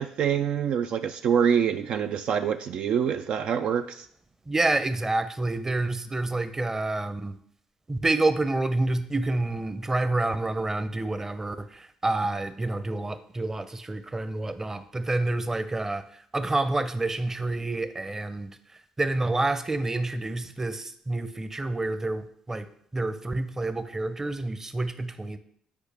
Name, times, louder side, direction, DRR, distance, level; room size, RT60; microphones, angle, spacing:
voice 1, 0.0-4.1, right 8 dB, 65° right, 7 dB, 0.4 m, -25 dB
voice 2, 4.5-7.4 7.9-22.7 22.9-25.4, right 2 dB, 20° right, 10 dB, 0.7 m, -28 dB
8.7 x 4.9 x 3.4 m, 0.65 s
supercardioid pair, 65°, 2 cm